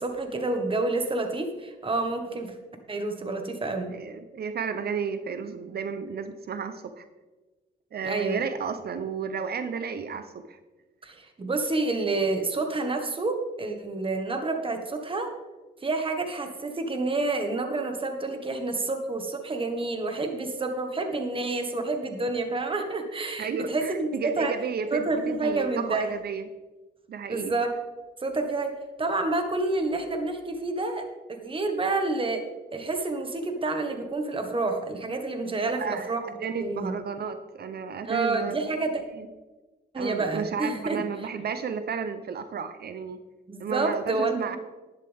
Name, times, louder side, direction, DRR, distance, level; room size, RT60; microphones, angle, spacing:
voice 1, 0.0-2.5 2.9-3.9 8.0-8.4 11.0-15.3 15.8-24.5 24.9-26.1 27.3-27.7 28.2-32.5 32.7-36.2 36.6-36.9 38.0-39.0 39.9-41.0 43.5-44.6, right 3 dB, 25° right, 5 dB, 1.7 m, -29 dB
voice 2, 3.9-7.0 7.9-10.6 23.4-26.5 27.1-27.5 35.6-38.7 39.2-39.3 40.0-43.2 43.6-44.6, right 6 dB, 55° right, 10 dB, 0.8 m, -32 dB
11.0 x 11.0 x 3.6 m, 1.2 s
cardioid pair, 90°, 20 cm